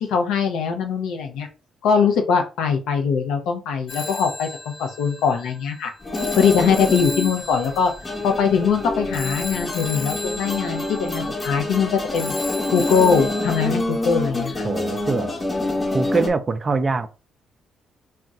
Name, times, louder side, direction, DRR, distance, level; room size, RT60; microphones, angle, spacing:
voice 1, 0.0-1.5 1.8-5.9 6.3-7.9 8.2-12.3 12.7-14.7, left 6 dB, 90° left, 0.6 m, -21 dB
Telephone, 3.9-13.7, left 2 dB, 40° left, 0.5 m, -35 dB
sound 1, 6.0-16.3, left 2 dB, 25° left, 0.8 m, -27 dB
voice 2, 14.6-15.3 15.9-17.1, right 4 dB, 35° right, 0.4 m, -23 dB
2.4 x 2.2 x 3.9 m
cardioid pair, 90°, 0 cm